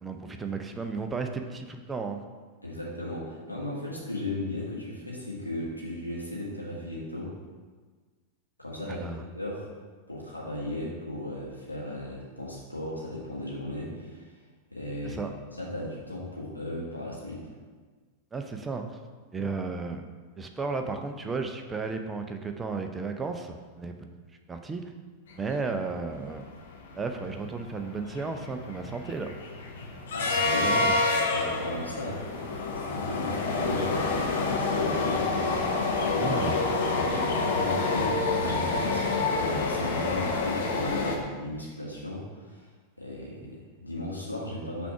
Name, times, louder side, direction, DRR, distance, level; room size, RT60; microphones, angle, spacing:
voice 1, 0.0-2.2 8.9-9.2 15.0-15.3 18.3-18.9 19.3-20.0 20.4-24.1 24.5-24.8 25.4-26.5 27.0-29.3 30.6-30.9 36.2-36.6, right 4 dB, 15° right, 5 dB, 0.5 m, -34 dB
voice 2, 2.6-7.3 8.6-9.7 10.1-14.3 14.7-15.2 15.5-17.5 30.1-32.2 32.8-35.3 36.0-42.7 43.0-44.9, left 1 dB, 85° left, -5 dB, 1.6 m, -36 dB
sound 1, 25.8-25.9 26.1-26.3 26.7-41.2, left 3 dB, 60° left, 0.9 m, -28 dB
6.0 x 3.5 x 5.7 m, 1.4 s
figure-of-eight pair, 90°, 0 cm